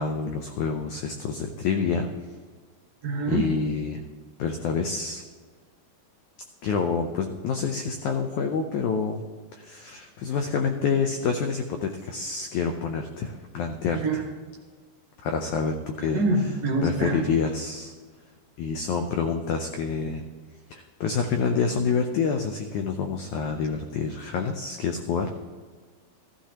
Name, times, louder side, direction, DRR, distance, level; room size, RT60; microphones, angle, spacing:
voice 1, 0.0-2.1 3.3-4.0 4.4-5.2 6.6-9.2 9.5-14.0 15.2-16.2 16.8-17.9 18.6-20.2 20.7-25.3, left 5 dB, 85° left, 5 dB, 1.7 m, -27 dB
voice 2, 3.0-3.4 13.9-14.2 16.0-17.2, right 3 dB, 70° right, 0 dB, 0.9 m, -25 dB
15.0 x 13.5 x 2.9 m, 1.5 s
omnidirectional pair, 4.3 m